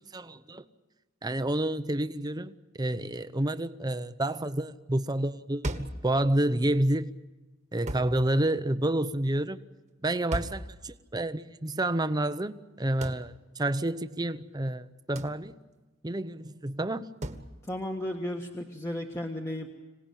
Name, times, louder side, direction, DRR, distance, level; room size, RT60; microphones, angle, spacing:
voice 1, 0.1-0.6 1.2-7.1 7.7-9.6 10.0-15.6 16.0-17.1, right 1 dB, 20° right, 12 dB, 0.8 m, -29 dB
sound 1, 5.6-6.1 7.9-8.2 10.3-10.7 13.0-13.3 15.2-15.4 17.2-17.5, right 1 dB, 35° right, 1.5 m, -34 dB
voice 2, 17.7-19.7, left 1 dB, 15° left, 1 dB, 1.5 m, -34 dB
26.0 x 18.5 x 9.1 m, 1.2 s
head